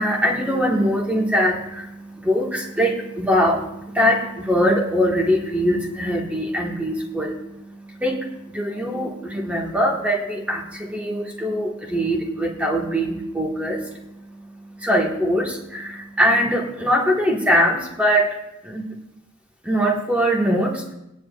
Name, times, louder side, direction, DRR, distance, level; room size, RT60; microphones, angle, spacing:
voice 1, 0.0-18.4 18.6-19.0 19.6-20.9, equal, 5° right, -1 dB, 1.7 m, -22 dB
21.0 x 9.9 x 2.5 m, 0.89 s
head